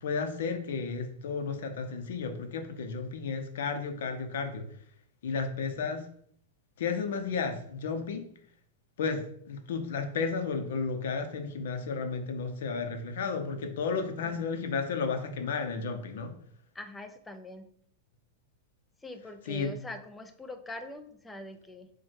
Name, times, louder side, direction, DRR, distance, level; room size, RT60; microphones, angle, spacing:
voice 1, 0.0-4.7 5.2-6.1 6.8-8.3 9.0-16.3 19.5-19.7, left 5 dB, 70° left, 7 dB, 0.6 m, -33 dB
voice 2, 16.7-17.7 19.0-21.9, left 1 dB, 5° left, 7 dB, 0.3 m, -43 dB
4.7 x 2.2 x 4.3 m, 0.65 s
supercardioid pair, 160°, 0 cm